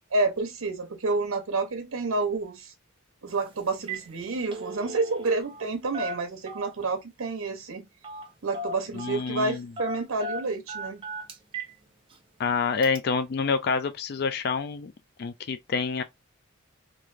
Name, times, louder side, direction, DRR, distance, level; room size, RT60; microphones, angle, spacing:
voice 1, 0.1-2.7 3.2-7.9 8.4-11.0, right 3 dB, 80° right, 0.7 m, -29 dB
Telephone, 3.3-3.4 3.7-4.1 4.4-5.6 5.9-6.9 8.0-8.3 8.5-9.2 9.8-11.7 12.1-12.2 12.8-13.0, right 1 dB, 25° right, 0.5 m, -36 dB
voice 2, 8.9-9.7 12.4-14.9 15.2-16.0, left 5 dB, 50° left, 0.3 m, -27 dB
3.1 x 2.5 x 2.4 m
head